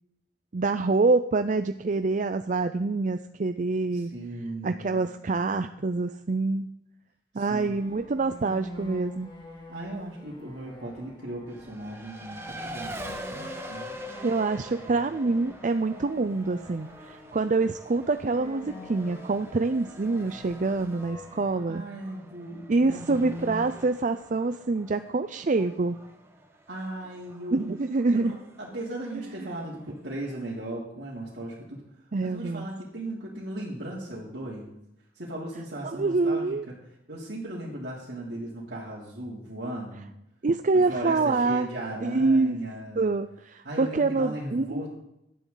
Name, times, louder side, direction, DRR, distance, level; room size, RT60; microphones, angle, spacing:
voice 1, 0.5-4.1 4.6-6.7 7.3-9.3 14.2-21.8 22.7-26.0 27.5-28.4 29.1-29.3 32.1-32.7 35.8-36.7 40.4-41.7 42.0-42.6 43.0-44.8, right 3 dB, 45° right, 9 dB, 0.5 m, -26 dB
voice 2, 3.9-5.0 7.3-7.7 9.7-13.9 21.7-23.7 26.7-27.6 28.1-31.8 32.2-34.7 35.1-36.8 37.1-40.1 40.7-43.1 43.6-44.9, right 1 dB, 70° right, -6 dB, 3.2 m, -37 dB
sound 1, 7.5-21.6, left 1 dB, 25° left, 2.7 m, -46 dB
Race car auto racing, 11.5-30.6, right 1 dB, 15° right, 1.5 m, -45 dB
17.0 x 12.0 x 4.0 m, 0.86 s
head